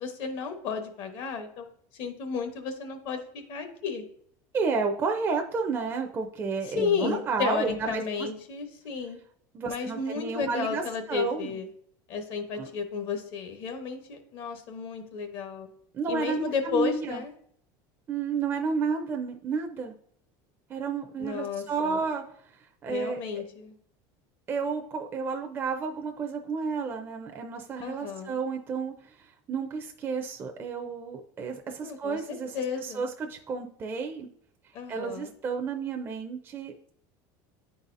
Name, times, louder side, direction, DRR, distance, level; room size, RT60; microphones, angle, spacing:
voice 1, 0.0-4.0 6.6-9.2 9.6-11.7 12.1-15.7 16.1-17.3 21.2-22.0 22.9-23.7 27.8-28.4 31.8-33.1 34.7-35.3, left 5 dB, 55° left, 6 dB, 0.9 m, -33 dB
voice 2, 4.5-8.3 9.5-10.8 11.1-11.6 12.6-12.7 15.9-17.2 18.1-20.0 20.7-22.2 22.8-23.2 24.5-34.3 34.9-36.7, right 5 dB, 25° right, 3 dB, 0.4 m, -31 dB
9.4 x 4.1 x 2.5 m, 0.65 s
cardioid pair, 150°, 10 cm